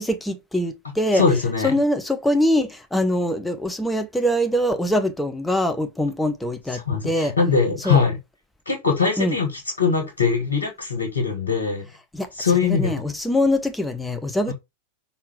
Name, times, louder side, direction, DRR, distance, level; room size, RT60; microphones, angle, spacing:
voice 1, 0.0-1.2 1.6-7.3 7.8-8.0 9.2-9.4 12.1-12.3 12.6-14.5, left 1 dB, 5° left, 0.9 m, -23 dB
voice 2, 1.1-1.7 6.7-8.2 8.6-11.9 12.4-12.9 14.5-14.6, left 5 dB, 70° left, 1.7 m, -22 dB
5.8 x 4.0 x 4.7 m
figure-of-eight pair, 90°, 0 cm